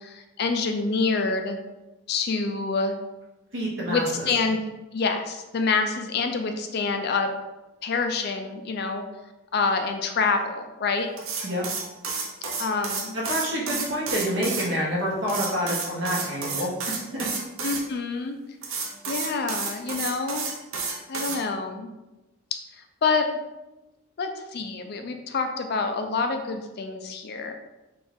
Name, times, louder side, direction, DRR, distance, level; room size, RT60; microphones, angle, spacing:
voice 1, 0.0-1.6 2.1-3.0 3.9-4.6 4.9-7.3 7.8-9.0 9.5-11.1 12.6-13.2 17.6-18.4 19.1-20.4 21.1-21.9 23.0-23.3 24.2-27.5, left 4 dB, 50° left, 5 dB, 0.4 m, -27 dB
voice 2, 3.5-4.3 11.4-11.7 13.1-17.3, equal, 60° right, -4 dB, 1.2 m, -28 dB
sound 1, 11.2-14.7 15.3-17.8 18.6-21.4, right 4 dB, 75° right, 0.7 m, -31 dB
3.9 x 2.4 x 3.5 m, 1.0 s
head